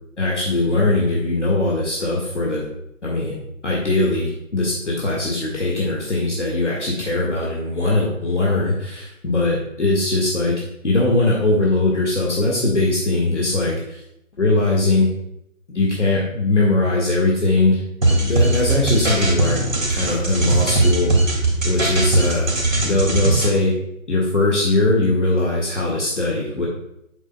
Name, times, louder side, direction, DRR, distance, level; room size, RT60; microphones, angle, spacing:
voice 1, 0.2-2.6 3.0-3.3 3.6-10.6 10.8-14.0 14.4-15.1 15.7-17.8 18.2-19.6 19.9-21.4 21.7-22.5 22.9-23.8 24.1-26.7, left 2 dB, 60° left, -4 dB, 1.8 m, -20 dB
sound 1, 18.0-23.5, right 2 dB, 70° right, 2.4 m, -19 dB
7.5 x 7.1 x 2.3 m, 0.80 s
figure-of-eight pair, 165°, 40 cm